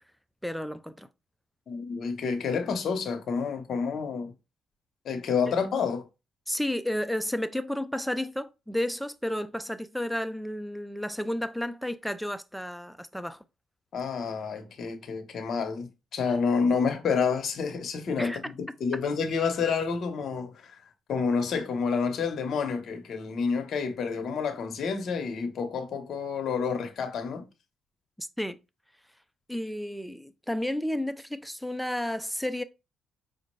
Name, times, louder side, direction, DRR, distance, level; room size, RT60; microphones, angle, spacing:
voice 1, 0.4-1.1 6.5-13.4 18.2-18.4 28.2-28.6 29.5-32.6, left 1 dB, ahead, 0.4 m, -32 dB
voice 2, 1.7-4.3 5.0-6.1 13.9-18.5 18.8-20.8 21.1-27.4, left 5 dB, 60° left, 1.0 m, -29 dB
5.2 x 2.5 x 3.1 m
cardioid pair, 90°, 0 cm